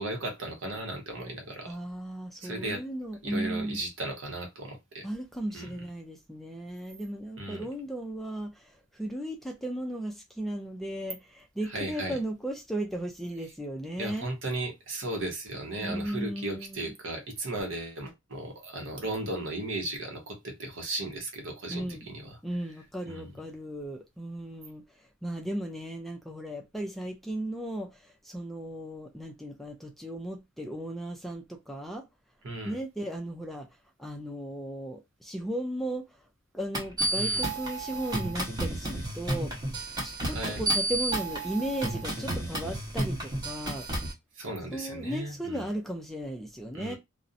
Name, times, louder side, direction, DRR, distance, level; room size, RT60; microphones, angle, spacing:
voice 1, 0.0-1.8 2.4-2.8 3.2-5.1 5.5-5.8 7.4-7.7 11.7-12.2 14.0-22.4 23.0-23.3 32.4-32.8 37.1-37.5 40.3-40.6 44.4-45.7 46.7-47.0, right 2 dB, 70° right, 0.9 m, -36 dB
voice 2, 1.7-3.8 5.0-14.3 15.8-16.9 21.7-22.1 22.4-32.0 32.6-33.7 34.0-36.1 36.5-39.5 40.0-43.9 44.7-47.0, right 1 dB, ahead, 0.3 m, -36 dB
sound 1, 36.7-44.1, right 1 dB, 20° right, 0.9 m, -31 dB
2.5 x 2.0 x 2.5 m
head